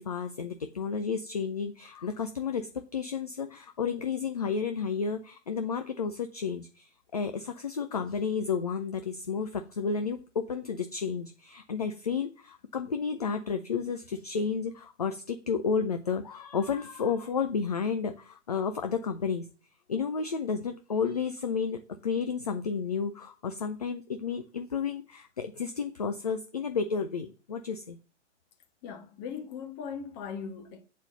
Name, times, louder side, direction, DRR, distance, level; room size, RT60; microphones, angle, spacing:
voice 1, 0.0-19.5 19.9-28.0, left 6 dB, 35° left, 0.4 m, -32 dB
voice 2, 28.8-30.8, left 6 dB, 15° left, 0.9 m, -39 dB
8.3 x 4.0 x 3.9 m
figure-of-eight pair, 130°, 36 cm